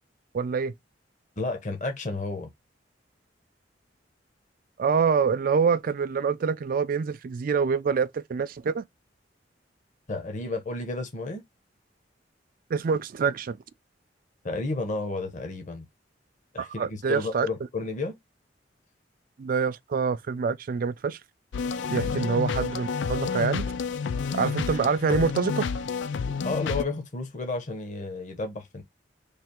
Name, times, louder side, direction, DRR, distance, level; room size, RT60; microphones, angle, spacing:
voice 1, 0.3-0.7 4.8-8.8 12.7-13.6 16.6-17.5 19.4-21.2 21.9-23.7 24.3-25.7, right 5 dB, 50° right, 0.4 m, -26 dB
voice 2, 1.4-2.5 10.1-11.4 14.4-15.9 16.5-18.1 22.0-22.1 26.4-28.8, left 3 dB, 45° left, 0.9 m, -32 dB
sound 1, 21.5-26.8, left 5 dB, 85° left, 0.4 m, -29 dB
3.3 x 2.4 x 4.3 m
head